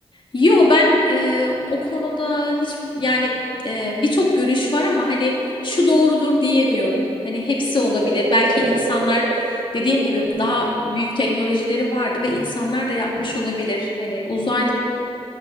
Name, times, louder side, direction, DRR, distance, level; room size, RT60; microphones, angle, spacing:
voice 1, 0.3-3.3 3.6-5.4 5.6-14.7, left 1 dB, 50° left, -2 dB, 1.9 m, -20 dB
sound 1, 4.8-10.3, right 4 dB, 75° right, 0.6 m, -28 dB
8.6 x 6.8 x 7.1 m, 3.0 s
cardioid pair, 60°, 11 cm